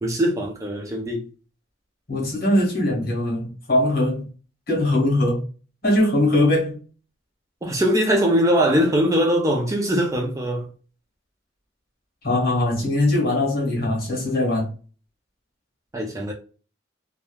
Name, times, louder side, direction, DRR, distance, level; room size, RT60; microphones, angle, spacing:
voice 1, 0.0-1.2 7.6-10.7 15.9-16.3, equal, 15° right, 0.4 m, -21 dB
voice 2, 2.1-4.3 4.7-5.4 5.8-6.8 12.2-14.7, left 1 dB, 50° left, 1.4 m, -21 dB
3.0 x 2.2 x 2.2 m
head